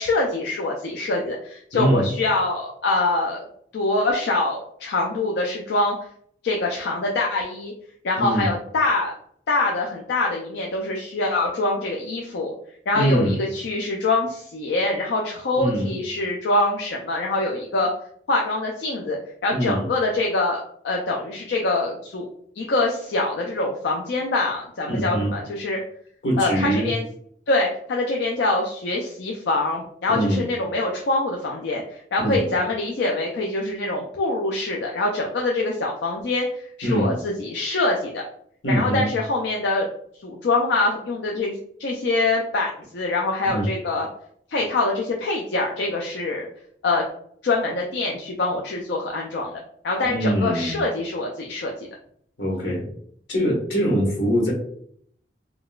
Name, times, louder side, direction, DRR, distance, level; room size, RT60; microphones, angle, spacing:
voice 1, 0.0-3.4 3.7-6.0 6.4-7.7 8.0-9.1 9.5-12.5 12.9-17.9 18.3-19.2 19.4-22.3 22.6-25.8 26.4-27.0 27.5-38.2 38.7-39.9 40.2-44.1 44.5-46.5 46.8-47.0 47.4-49.6 49.8-51.9, left 2 dB, 70° left, 0 dB, 0.4 m, -24 dB
voice 2, 1.7-2.1 8.2-8.5 12.9-13.4 15.5-15.9 19.5-19.9 24.9-25.3 26.2-26.9 30.1-30.5 32.2-32.5 36.8-37.2 38.6-39.1 43.4-43.6 50.0-50.8 52.4-52.9 53.3-54.5, right 1 dB, 90° left, -3 dB, 1.3 m, -23 dB
3.7 x 2.3 x 2.3 m, 0.65 s
head